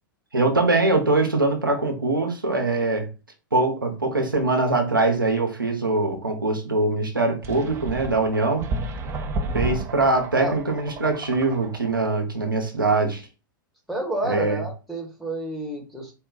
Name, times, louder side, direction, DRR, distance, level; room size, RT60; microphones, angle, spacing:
voice 1, 0.3-3.1 3.5-8.7 9.5-13.2 14.2-14.6, right 2 dB, 85° right, 0.7 m, -22 dB
sound 1, 7.4-12.0, right 2 dB, 25° right, 0.6 m, -32 dB
voice 2, 13.9-16.1, right 1 dB, ahead, 1.1 m, -30 dB
4.1 x 2.2 x 3.8 m
figure-of-eight pair, 100°, 11 cm